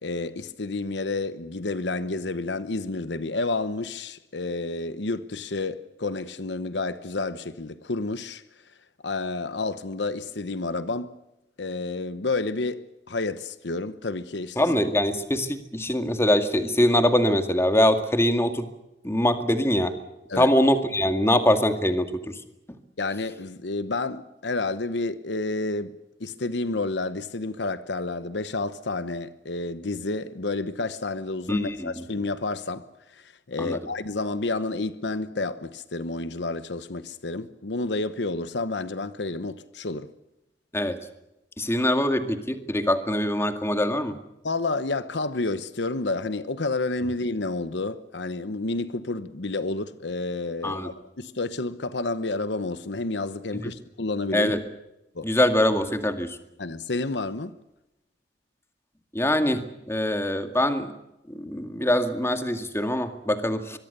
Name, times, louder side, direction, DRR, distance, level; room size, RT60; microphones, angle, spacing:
voice 1, 0.0-8.4 9.0-11.1 11.6-14.7 20.3-20.5 23.0-40.1 44.4-54.5 55.1-55.3 56.6-57.5, left 3 dB, 75° left, 1.0 m, -30 dB
voice 2, 14.6-18.7 19.0-19.9 20.4-22.3 31.5-31.9 33.6-33.8 40.7-41.0 41.6-44.1 50.6-50.9 54.3-54.6 55.2-56.4 59.1-60.9 61.3-63.8, left 1 dB, 15° left, 2.1 m, -23 dB
25.0 x 22.5 x 6.8 m
head